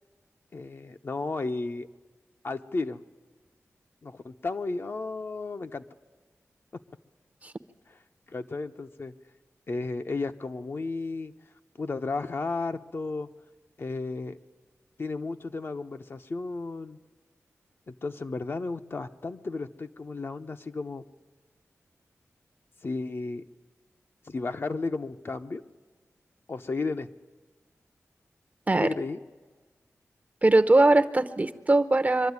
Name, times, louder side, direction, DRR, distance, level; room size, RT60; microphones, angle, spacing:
voice 1, 0.5-1.9 2.4-3.0 4.0-5.8 7.9-8.0 8.3-9.1 9.7-11.3 11.8-13.3 13.8-14.4 15.0-17.0 17.9-21.0 22.8-23.4 24.3-25.6 26.5-27.1 28.8-29.2, left 3 dB, 50° left, 7 dB, 0.8 m, -33 dB
voice 2, 30.4-32.3, right 2 dB, 30° right, 11 dB, 0.8 m, -21 dB
23.5 x 12.5 x 9.6 m, 1.4 s
wide cardioid pair, 90°, 5 cm